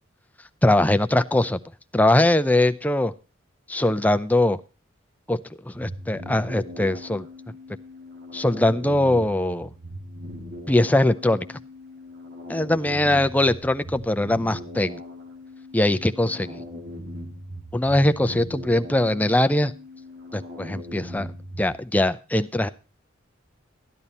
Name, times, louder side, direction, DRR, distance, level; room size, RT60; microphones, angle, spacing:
voice 1, 0.6-1.6 1.9-3.1 3.7-4.6 5.3-5.4 5.6-7.2 8.3-9.7 10.7-11.6 12.5-15.0 15.7-16.6 17.7-19.7 20.3-21.3 21.6-22.7, left 1 dB, 10° left, 11 dB, 0.5 m, -21 dB
sound 1, 5.7-21.8, left 1 dB, 45° right, 2.0 m, -39 dB
13.5 x 10.5 x 4.1 m, 0.33 s
head